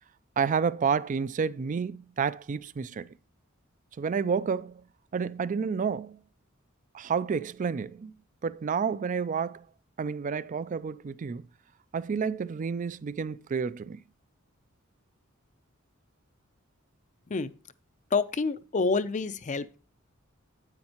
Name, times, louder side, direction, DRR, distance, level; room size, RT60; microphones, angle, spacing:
voice 1, 0.4-3.1 4.0-4.8 5.1-6.2 6.9-8.1 8.4-9.7 10.0-11.4 11.9-14.0, right 6 dB, 40° right, 0.4 m, -30 dB
voice 2, 18.1-19.8, left 4 dB, 35° left, 0.5 m, -28 dB
9.7 x 8.7 x 2.9 m
head